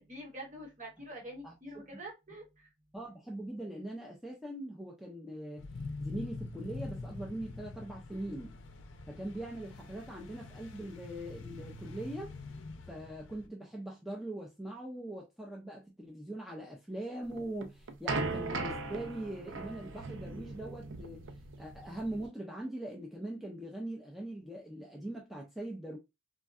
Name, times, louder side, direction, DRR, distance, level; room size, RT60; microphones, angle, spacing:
voice 1, 0.0-2.7, right 1 dB, 40° right, 1.0 m, -46 dB
voice 2, 2.9-5.7 6.0-8.6 9.1-12.3 12.9-21.3 21.6-26.0, right 1 dB, ahead, 0.4 m, -41 dB
sound 1, 5.6-13.5, left 3 dB, 65° left, 0.5 m, -45 dB
sound 2, 17.3-22.3, right 3 dB, 70° right, 0.4 m, -39 dB
3.4 x 2.1 x 2.3 m
head